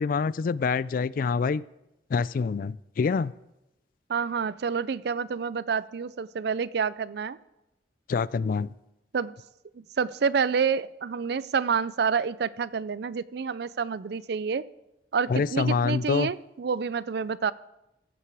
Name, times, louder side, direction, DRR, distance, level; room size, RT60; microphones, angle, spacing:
voice 1, 0.0-1.6 2.1-3.3 8.1-8.7 15.3-16.3, left 5 dB, 50° left, 20 dB, 0.3 m, -26 dB
voice 2, 4.1-7.4 9.1-9.4 9.8-14.6 15.1-17.5, right 6 dB, 65° right, 18 dB, 0.4 m, -28 dB
15.0 x 8.7 x 4.8 m, 0.89 s
head